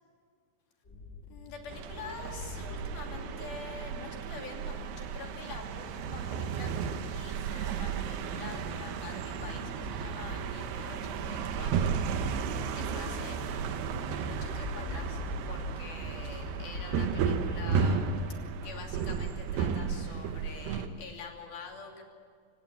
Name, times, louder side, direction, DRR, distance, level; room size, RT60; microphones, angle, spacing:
sound 1, 0.8-19.0, left 2 dB, 20° left, 2.3 m, -43 dB
voice 1, 1.3-18.2 18.6-22.0, left 5 dB, 65° left, 2 dB, 4.6 m, -46 dB
sound 2, 1.7-20.9, right 6 dB, 80° right, 3.3 m, -34 dB
27.5 x 17.5 x 9.7 m, 2.2 s
omnidirectional pair, 4.6 m